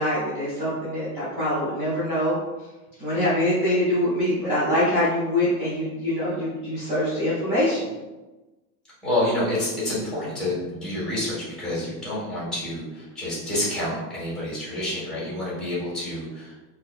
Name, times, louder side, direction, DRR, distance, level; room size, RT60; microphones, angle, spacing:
voice 1, 0.0-2.4 3.0-7.9, left 1 dB, 15° right, -11 dB, 0.4 m, -24 dB
voice 2, 9.0-16.5, left 1 dB, ahead, -9 dB, 1.4 m, -28 dB
3.6 x 2.7 x 2.3 m, 1.1 s
supercardioid pair, 160°, 49 cm